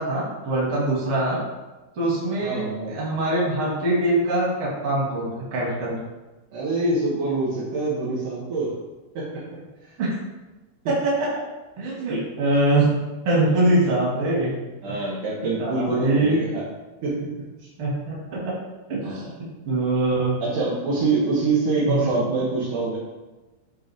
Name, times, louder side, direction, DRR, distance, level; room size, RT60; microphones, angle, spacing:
voice 1, 0.0-1.4 1.9-6.0 10.0-10.1 10.9-11.3 11.8-13.0 13.2-14.5 14.9-15.0 15.6-16.4 17.8-18.5 18.9-20.4 21.9-22.1, right 2 dB, 45° right, -5 dB, 1.7 m, -23 dB
voice 2, 2.4-2.9 6.5-8.7 9.1-9.4 13.4-13.7 14.8-16.6 17.0-17.3 19.0-19.2 20.4-23.0, right 3 dB, 85° right, -8 dB, 1.8 m, -25 dB
10.5 x 3.8 x 3.6 m, 1.1 s
omnidirectional pair, 5.6 m